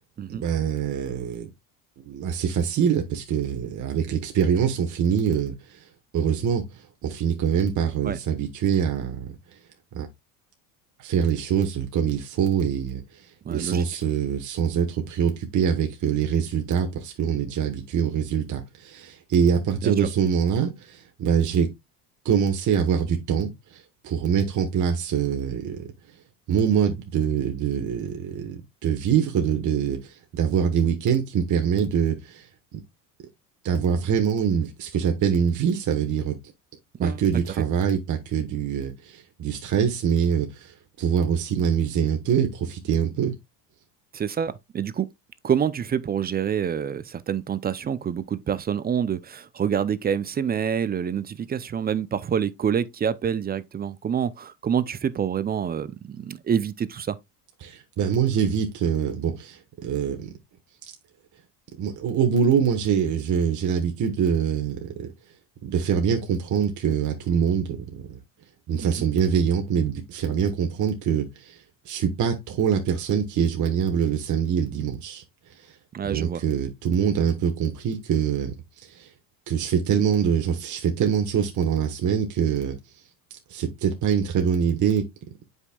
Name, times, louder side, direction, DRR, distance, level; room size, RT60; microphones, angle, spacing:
voice 1, 0.3-1.5 2.1-5.9 6.1-9.4 9.9-10.1 11.0-21.7 22.2-25.9 26.5-32.5 32.7-32.8 33.6-36.4 37.0-43.3 57.6-60.3 61.8-65.1 65.6-68.2 68.7-75.2 75.6-75.7 76.0-79.1 79.5-82.8 83.3-85.1, right 7 dB, 40° right, 1.4 m, -24 dB
voice 2, 13.4-13.8 19.8-19.9 37.0-37.2 44.1-45.1 45.4-57.2 68.8-69.1 75.9-76.4, right 8 dB, 20° right, 0.5 m, -27 dB
8.0 x 5.5 x 2.3 m
hypercardioid pair, 85°, 46 cm